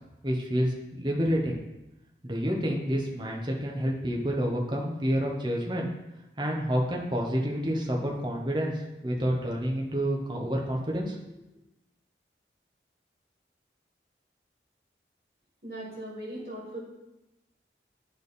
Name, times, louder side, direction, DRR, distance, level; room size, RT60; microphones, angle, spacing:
voice 1, 0.2-1.6 2.2-5.9 6.4-11.2, equal, 25° right, -1 dB, 0.9 m, -29 dB
voice 2, 15.6-16.8, right 1 dB, 60° right, -5 dB, 1.7 m, -38 dB
8.8 x 3.5 x 4.1 m, 0.96 s
head